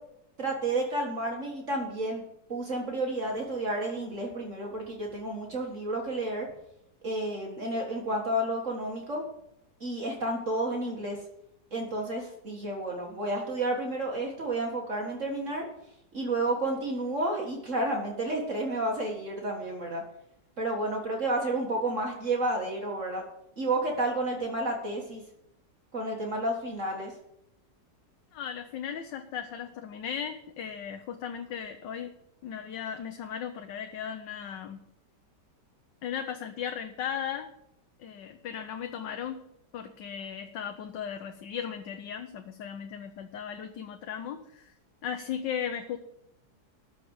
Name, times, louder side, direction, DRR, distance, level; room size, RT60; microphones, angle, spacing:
voice 1, 0.4-2.2 2.5-6.5 7.0-9.2 9.8-11.2 11.7-15.6 16.1-20.0 20.6-23.2 23.6-25.2 25.9-27.1, right 1 dB, 45° right, 0 dB, 2.0 m, -31 dB
voice 2, 28.3-32.1 32.4-34.8 36.0-37.5 38.0-39.4 39.7-44.7 45.0-46.0, left 8 dB, 90° left, 6 dB, 1.5 m, -36 dB
13.5 x 5.1 x 7.9 m, 0.79 s
omnidirectional pair, 1.9 m